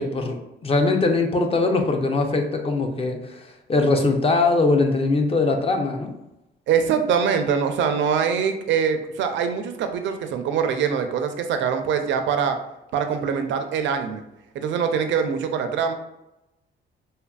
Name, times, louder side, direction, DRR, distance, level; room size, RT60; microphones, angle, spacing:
voice 1, 0.0-6.1, left 3 dB, 30° left, 4 dB, 0.4 m, -21 dB
voice 2, 6.7-12.6 12.9-14.2 14.5-15.9, right 7 dB, 70° right, 7 dB, 0.4 m, -23 dB
2.7 x 2.5 x 2.2 m, 0.91 s
cardioid pair, 90°, 20 cm